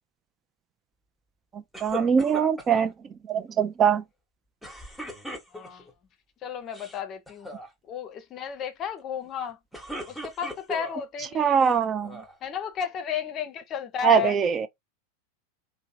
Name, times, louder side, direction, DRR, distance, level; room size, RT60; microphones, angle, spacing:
voice 1, 1.5-2.9 3.3-4.0 11.4-12.2 14.0-14.7, right 7 dB, 30° right, 0.4 m, -22 dB
sound 1, 1.7-2.9 4.6-5.9 6.6-7.0 7.3-7.7 9.5-11.0 11.6-12.3, left 1 dB, ahead, 0.9 m, -38 dB
voice 2, 5.5-5.9 6.4-7.5 7.9-9.6 10.1-11.6 12.4-14.4, left 8 dB, 40° left, 0.6 m, -33 dB
2.8 x 2.0 x 2.6 m
hypercardioid pair, 95°, 0 cm